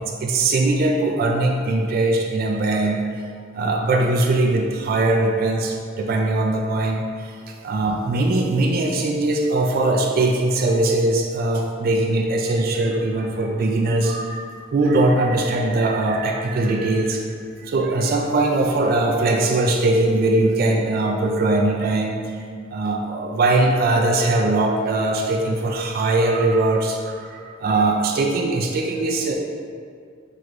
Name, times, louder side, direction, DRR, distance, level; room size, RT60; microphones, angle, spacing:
voice 1, 0.0-3.0 3.5-17.3 17.6-22.2 22.7-29.3, right 2 dB, 50° right, 1 dB, 0.3 m, -21 dB
6.0 x 3.0 x 2.5 m, 2.2 s
head